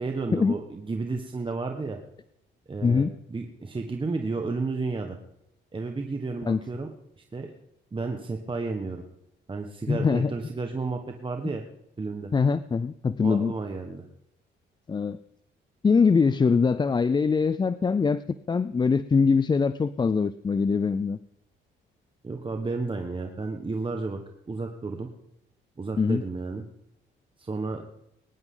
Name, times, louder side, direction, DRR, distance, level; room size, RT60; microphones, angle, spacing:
voice 1, 0.0-2.0 2.7-5.2 5.7-6.9 7.2-7.5 7.9-9.0 9.5-11.6 12.0-12.3 13.2-14.1 22.2-24.2 24.5-25.1 25.8-26.6 27.4-27.8, right 3 dB, 25° right, 4 dB, 1.4 m, -32 dB
voice 2, 9.9-10.3 12.3-13.5 14.9-15.2 15.8-18.2 18.5-21.2 26.0-26.2, left 5 dB, 20° left, 15 dB, 0.4 m, -23 dB
21.5 x 10.5 x 3.9 m, 0.81 s
cardioid pair, 90°, 20 cm